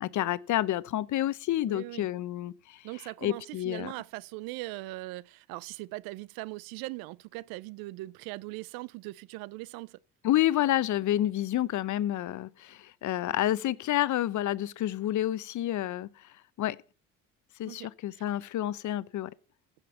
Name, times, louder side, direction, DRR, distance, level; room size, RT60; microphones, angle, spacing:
voice 1, 0.0-2.9 3.2-3.9 10.2-16.8 17.6-19.3, left 13 dB, 55° left, 0.7 m, -29 dB
voice 2, 1.6-2.1 2.8-10.0 17.6-17.9 18.1-18.2, right 20 dB, 75° right, 0.5 m, -40 dB
14.5 x 5.4 x 7.0 m
hypercardioid pair, 60°, 36 cm